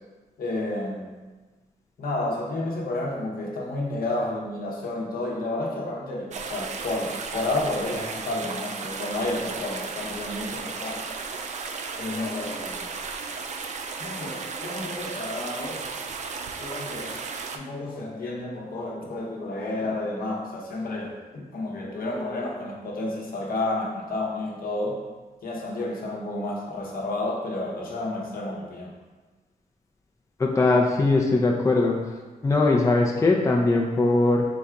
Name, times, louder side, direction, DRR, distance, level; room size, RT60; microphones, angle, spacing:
voice 1, 0.4-1.1 2.0-11.1 12.0-12.8 14.0-15.9 16.6-17.2 17.5-25.0 25.4-28.9, left 2 dB, 70° left, -2 dB, 0.9 m, -31 dB
sound 1, 6.3-17.6, right 4 dB, 50° right, 0.4 m, -34 dB
voice 2, 30.4-32.0 32.4-34.5, left 2 dB, 20° left, 0 dB, 0.5 m, -20 dB
4.0 x 2.4 x 4.5 m, 1.3 s
cardioid pair, 110°, 16 cm